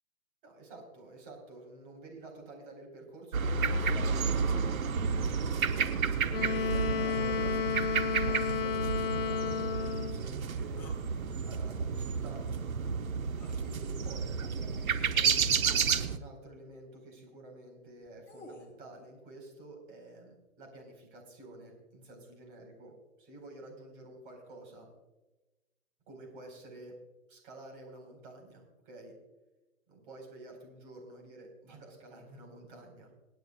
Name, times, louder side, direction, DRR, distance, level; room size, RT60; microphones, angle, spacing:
voice 1, 0.4-4.6 5.4-8.0 8.2-12.6 13.6-24.9 26.1-26.9 27.3-29.1 29.9-33.1, right 2 dB, 40° right, 1 dB, 4.4 m, -50 dB
sound 1, 3.3-16.2, right 5 dB, 90° right, 1.1 m, -31 dB
Wind instrument woodwind instrument, 6.3-10.2, left 7 dB, 45° left, 0.9 m, -32 dB
sound 2, 10.8-11.1 13.4-13.6 15.0-15.1 15.6-15.9 17.9-18.7, left 1 dB, 5° left, 0.8 m, -51 dB
27.0 x 9.2 x 2.3 m, 1.1 s
hypercardioid pair, 155°, 40 cm